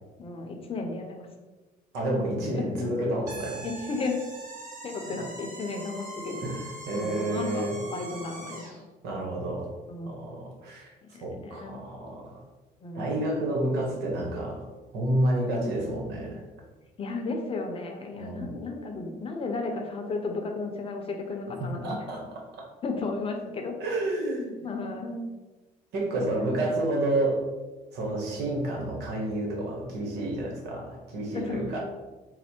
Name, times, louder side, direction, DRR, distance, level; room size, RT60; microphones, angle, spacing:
voice 1, 0.2-1.3 2.5-2.9 3.6-4.2 4.8-6.4 6.9-8.7 9.9-10.2 11.0-11.8 12.8-13.5 17.0-22.0 22.8-23.8 24.6-25.3 26.2-26.8 31.3-31.8, left 3 dB, 35° left, 3 dB, 0.7 m, -34 dB
voice 2, 1.9-3.7 5.1-5.2 6.4-7.8 9.0-9.7 10.1-10.9 11.2-12.4 12.9-14.7 14.9-16.4 18.1-18.5 21.8-22.3 22.6-22.7 23.8-24.7 25.9-27.4 27.9-31.8, right 1 dB, 85° right, -1 dB, 1.1 m, -30 dB
sound 1, 3.3-8.8, right 2 dB, 50° right, 1.2 m, -42 dB
4.2 x 2.1 x 4.3 m, 1.2 s
cardioid pair, 110°, 17 cm